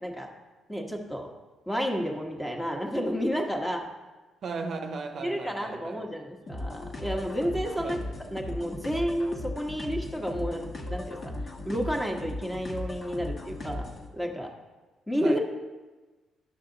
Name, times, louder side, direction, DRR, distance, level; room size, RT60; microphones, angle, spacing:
voice 1, 0.7-1.3 1.7-3.8 5.2-8.0 8.3-11.3 11.6-13.9 14.1-14.5 15.1-15.4, equal, 10° left, 1 dB, 1.3 m, -31 dB
voice 2, 4.4-6.1 7.8-8.0 15.2-15.4, right 4 dB, 60° right, 5 dB, 0.7 m, -36 dB
sound 1, 6.5-14.1, left 1 dB, 45° left, 1.3 m, -37 dB
10.5 x 5.9 x 3.9 m, 1.2 s
cardioid pair, 90°, 0 cm